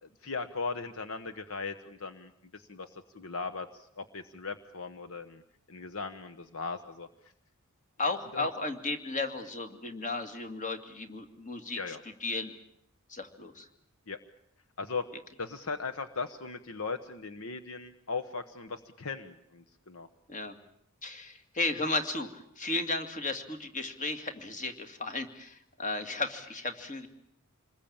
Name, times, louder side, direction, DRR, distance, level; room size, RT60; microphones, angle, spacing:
voice 1, 0.0-5.4 5.7-7.1 8.3-8.5 11.7-12.0 14.1-14.2 14.8-15.1 15.4-20.1, left 4 dB, 70° left, 9 dB, 1.2 m, -38 dB
voice 2, 8.0-12.5 13.1-13.7 20.3-20.5 21.0-27.1, left 3 dB, 35° left, 6 dB, 2.3 m, -34 dB
27.0 x 21.0 x 8.8 m, 0.72 s
head